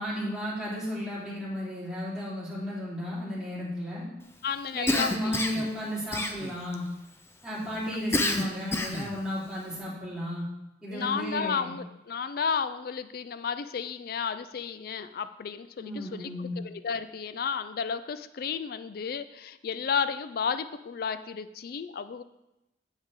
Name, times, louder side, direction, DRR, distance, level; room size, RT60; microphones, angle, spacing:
voice 1, 0.0-4.1 4.7-6.8 7.4-10.4 10.8-11.7 15.8-16.6, equal, 5° right, -9 dB, 3.6 m, -34 dB
voice 2, 4.4-5.3 10.9-22.2, left 6 dB, 55° left, 13 dB, 0.4 m, -32 dB
Cough, 4.9-5.7 6.1-6.7 8.1-9.1, left 1 dB, 15° left, 0.6 m, -28 dB
9.6 x 8.2 x 3.7 m, 0.93 s
head